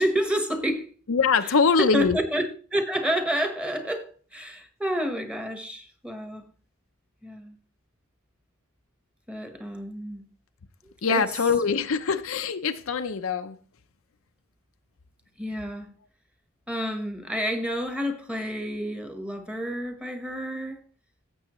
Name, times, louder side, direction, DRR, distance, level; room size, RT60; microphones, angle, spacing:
voice 1, 0.0-0.9 1.4-6.5 7.2-7.5 9.3-10.2 10.8-11.3 15.4-15.9 16.7-20.8, equal, 5° right, 1.1 m, -29 dB
voice 2, 1.1-2.2 11.0-13.6, left 5 dB, 65° left, 0.6 m, -23 dB
15.5 x 7.0 x 3.0 m
head